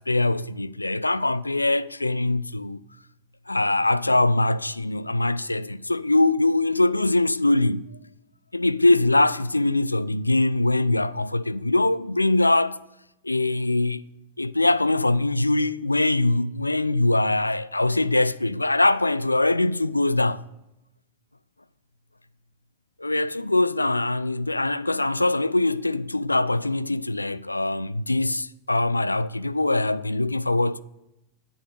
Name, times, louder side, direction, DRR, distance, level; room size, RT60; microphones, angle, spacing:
voice 1, 0.0-2.8 3.5-7.9 8.5-12.8 13.2-14.0 14.4-20.4 23.0-30.8, left 2 dB, 85° left, 0.3 m, -22 dB
10.5 x 9.0 x 6.7 m
figure-of-eight pair, 90°, 0 cm